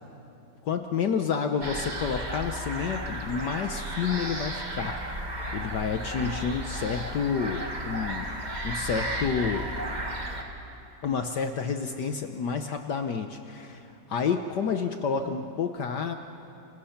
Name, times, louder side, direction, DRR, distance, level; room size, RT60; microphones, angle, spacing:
voice 1, 0.6-5.3 5.5-8.3 8.6-9.7 11.0-16.1, left 6 dB, 65° left, 6 dB, 1.4 m, -29 dB
sound 1, 1.6-10.4, right 1 dB, 25° right, 1.8 m, -34 dB
27.5 x 27.0 x 5.8 m, 2.9 s
omnidirectional pair, 2.2 m